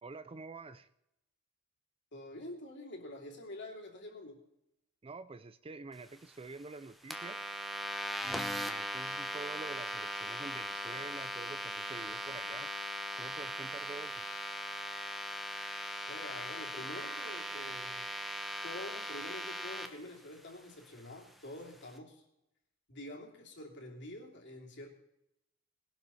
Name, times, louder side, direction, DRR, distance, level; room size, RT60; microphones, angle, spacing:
voice 1, 0.0-0.9 5.0-7.4 8.2-12.7 13.2-14.3, right 3 dB, 25° right, 13 dB, 0.5 m, -47 dB
voice 2, 2.1-4.4 16.1-18.1 18.6-22.2 22.9-24.9, left 1 dB, 55° left, 1 dB, 2.9 m, -47 dB
sound 1, 7.1-19.9, equal, ahead, 1.1 m, -39 dB
20.5 x 11.5 x 4.2 m, 0.84 s
head